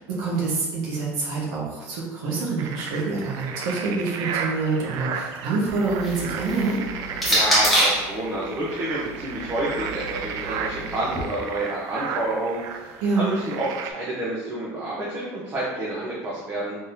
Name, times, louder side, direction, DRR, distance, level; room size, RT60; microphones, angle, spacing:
voice 1, 0.0-6.8 13.0-13.3, right 3 dB, 75° right, -4 dB, 1.3 m, -26 dB
sound 1, 2.6-13.9, right 6 dB, 55° right, 0.4 m, -34 dB
sound 2, 5.7-8.1 9.1-11.2, equal, ahead, 1.0 m, -26 dB
voice 2, 7.3-16.8, right 1 dB, 30° right, -6 dB, 0.8 m, -29 dB
3.8 x 3.8 x 2.7 m, 1.2 s
cardioid pair, 160°, 7 cm